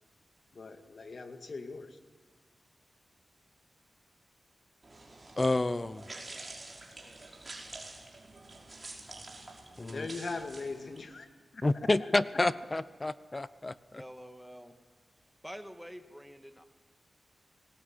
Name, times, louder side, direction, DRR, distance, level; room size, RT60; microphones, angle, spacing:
voice 1, 0.5-2.0 9.8-11.3 11.5-11.6, left 3 dB, 55° left, 7 dB, 2.2 m, -40 dB
sound 1, 4.8-11.0, right 2 dB, 30° right, 5.2 m, -47 dB
voice 2, 5.4-6.1 9.8-10.1 11.6-14.0, left 2 dB, 25° left, 16 dB, 0.7 m, -29 dB
voice 3, 13.9-14.7 15.4-16.6, equal, ahead, 7 dB, 1.7 m, -47 dB
27.0 x 20.0 x 8.9 m, 1.5 s
wide cardioid pair, 105°, 0 cm